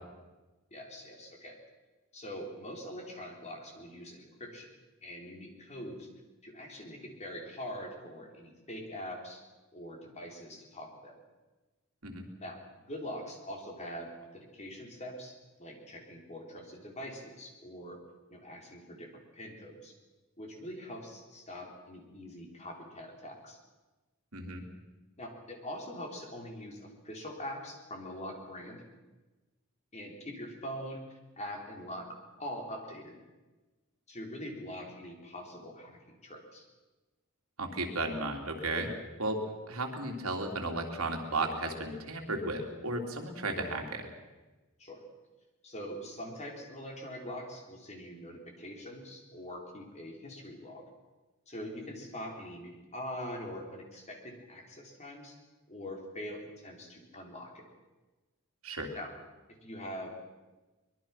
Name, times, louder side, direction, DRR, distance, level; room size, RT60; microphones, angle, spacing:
voice 1, 0.7-1.6 2.1-4.7 5.0-6.1 6.4-9.4 9.7-11.2 12.4-12.6 12.9-18.0 18.3-20.0 20.4-23.6 25.2-28.8 29.9-32.1 32.4-33.2 34.1-36.7 43.4-43.7 44.8-45.0 45.6-50.8 51.5-55.4 55.7-57.7 58.9-59.1 59.6-60.2, equal, 30° left, 1 dB, 4.0 m, -43 dB
voice 2, 24.3-24.6 37.6-38.9 39.2-39.4 39.7-44.1 58.6-58.9, right 2 dB, 75° right, 2 dB, 3.3 m, -34 dB
24.0 x 22.0 x 5.9 m, 1.2 s
head